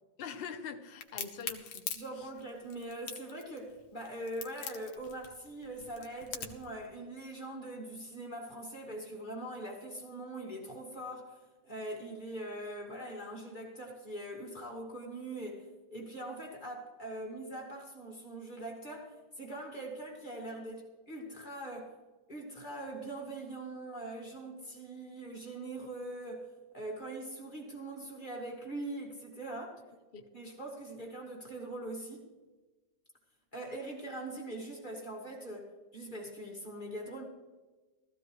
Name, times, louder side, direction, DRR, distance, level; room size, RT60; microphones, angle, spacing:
voice 1, 0.2-1.9 2.2-2.3 30.1-30.3, left 6 dB, 50° left, 8 dB, 0.7 m, -43 dB
Crack, 1.0-6.7, left 7 dB, 90° left, 1.8 m, -42 dB
voice 2, 1.9-22.0 22.3-29.8 30.3-32.3 33.5-37.2, right 1 dB, 25° left, -1 dB, 2.1 m, -42 dB
15.0 x 14.5 x 3.2 m, 1.2 s
omnidirectional pair, 2.0 m